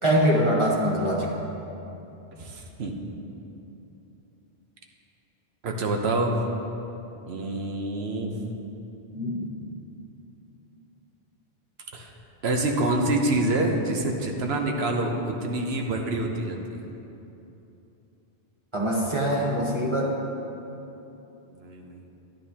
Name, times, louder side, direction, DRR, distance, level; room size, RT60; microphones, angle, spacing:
voice 1, 0.0-1.3 9.1-9.5 18.7-20.1, equal, 30° right, -3 dB, 0.9 m, -23 dB
voice 2, 2.4-2.9 5.6-6.4 7.3-8.4 11.9-12.1 12.4-16.8 21.5-22.0, right 2 dB, 75° right, 2 dB, 1.1 m, -27 dB
11.0 x 10.5 x 2.9 m, 2.9 s
omnidirectional pair, 1.1 m